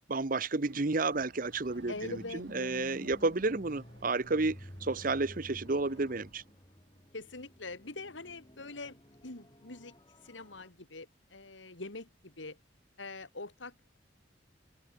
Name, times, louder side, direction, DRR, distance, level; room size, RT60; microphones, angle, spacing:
voice 1, 0.1-6.4, right 3 dB, 45° right, 0.9 m, -31 dB
Chatter / Car passing by / Motorcycle, 0.6-6.5, right 2 dB, 70° right, 4.1 m, -59 dB
sound 1, 1.4-10.7, equal, 25° left, 6.9 m, -52 dB
voice 2, 1.9-2.9 7.1-9.0 9.2-9.9 10.2-12.6 13.0-13.7, left 3 dB, 85° left, 2.7 m, -44 dB
head